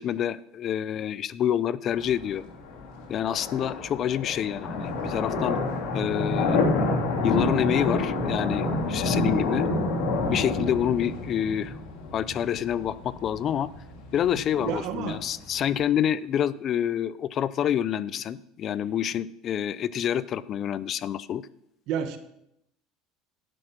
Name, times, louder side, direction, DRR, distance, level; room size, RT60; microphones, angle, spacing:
voice 1, 0.0-2.4 3.1-5.6 5.9-6.6 7.2-9.7 10.2-11.8 12.1-13.7 14.1-21.4, left 10 dB, 40° left, 18 dB, 0.4 m, -27 dB
sound 1, 1.9-15.8, left 3 dB, 70° left, 2.9 m, -29 dB
voice 2, 14.3-15.2 21.9-22.2, right 8 dB, 60° right, 9 dB, 1.2 m, -31 dB
10.5 x 6.4 x 6.0 m, 0.79 s
supercardioid pair, 125°, 0 cm